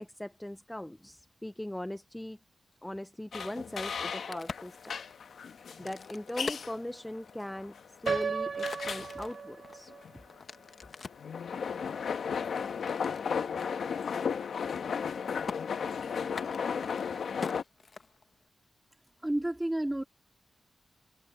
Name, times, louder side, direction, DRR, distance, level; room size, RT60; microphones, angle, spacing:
voice 1, 0.0-2.4 2.8-5.0 5.5-9.9, left 1 dB, 10° left, 0.5 m, -40 dB
sound 1, 3.3-17.6, left 6 dB, 75° left, 1.2 m, -35 dB
Crack, 4.1-7.5 8.0-11.3 11.9-13.2 13.6-13.7 14.0-14.3 14.6-15.1 15.5-15.6 16.2-18.5, left 4 dB, 50° left, 1.2 m, -44 dB
Piano, 8.1-10.0, right 5 dB, 50° right, 0.4 m, -34 dB
voice 2, 19.2-20.0, right 1 dB, 10° right, 2.2 m, -30 dB
wide cardioid pair, 130°, 0 cm